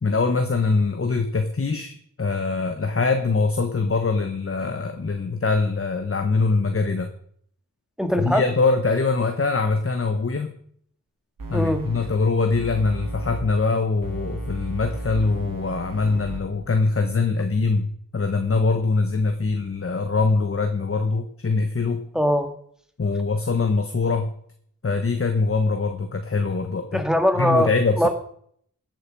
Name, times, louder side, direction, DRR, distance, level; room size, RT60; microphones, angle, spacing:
voice 1, 0.0-1.9 2.2-7.1 8.2-10.5 11.5-22.0 23.0-24.3 24.8-27.0 27.4-28.1, left 4 dB, 40° left, 6 dB, 1.2 m, -23 dB
voice 2, 8.0-8.4 11.5-11.8 22.1-22.5 26.9-27.7 28.0-28.1, equal, ahead, 6 dB, 2.1 m, -21 dB
sound 1, 11.4-12.1 12.5-13.4 14.0-16.4, right 2 dB, 75° right, 3.1 m, -33 dB
14.5 x 8.0 x 5.4 m, 0.63 s
wide cardioid pair, 55°, 33 cm